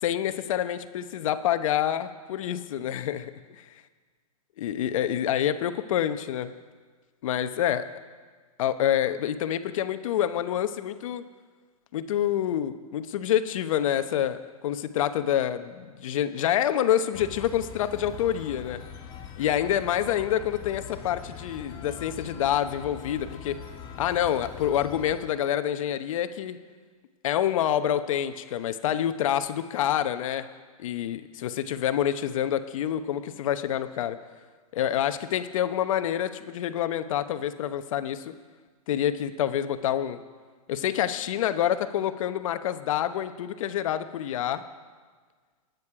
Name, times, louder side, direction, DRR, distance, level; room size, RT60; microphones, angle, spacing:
voice 1, 0.0-3.3 4.6-6.5 7.2-7.8 8.6-11.2 11.9-18.8 19.4-23.6 24.0-26.6 27.2-30.5 30.8-34.2 34.7-38.3 38.9-40.2 40.7-44.6, left 10 dB, 60° left, 10 dB, 1.0 m, -27 dB
sound 1, 17.1-25.2, left 7 dB, 25° left, 2.7 m, -42 dB
24.0 x 9.5 x 4.8 m, 1.5 s
hypercardioid pair, 125°, 19 cm